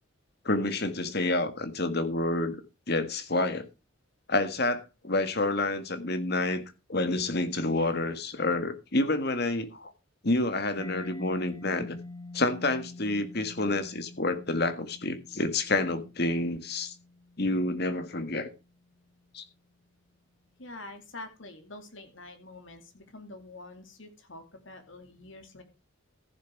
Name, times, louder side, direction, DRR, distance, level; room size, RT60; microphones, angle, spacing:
voice 1, 0.4-2.6 2.9-3.7 4.3-6.6 6.9-9.9 10.2-12.0 12.3-16.9 17.4-18.5 19.3-19.4, left 2 dB, 50° left, 1.7 m, -28 dB
Mallet percussion, 10.8-18.3, left 2 dB, 20° left, 1.0 m, -46 dB
voice 2, 20.6-25.6, left 2 dB, 65° left, 2.6 m, -46 dB
15.0 x 7.4 x 4.6 m
head